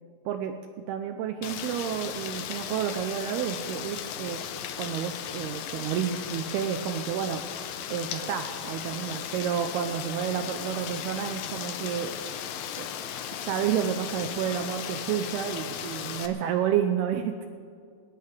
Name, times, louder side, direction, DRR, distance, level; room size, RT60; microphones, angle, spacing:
voice 1, 0.9-4.4 4.8-7.4 7.9-12.1 12.8-12.9 13.3-17.4, right 9 dB, 85° right, 7 dB, 2.3 m, -30 dB
Rain, 1.4-16.3, left 9 dB, 85° left, 1.9 m, -36 dB
20.5 x 18.0 x 3.4 m, 2.3 s
omnidirectional pair, 5.2 m